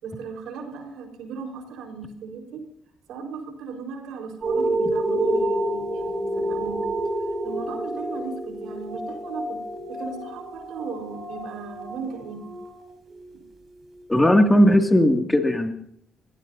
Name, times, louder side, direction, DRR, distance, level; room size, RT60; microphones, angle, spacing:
voice 1, 0.0-2.6 3.1-6.8 7.4-9.6 9.9-12.5, right 5 dB, 90° right, 2 dB, 4.6 m, -36 dB
sound 1, 4.4-13.3 13.9-14.0, right 1 dB, 45° right, 6.7 m, -28 dB
voice 2, 14.1-15.7, equal, 10° left, 4 dB, 2.4 m, -17 dB
28.0 x 17.5 x 2.8 m, 0.69 s
cardioid pair, 90°, 0 cm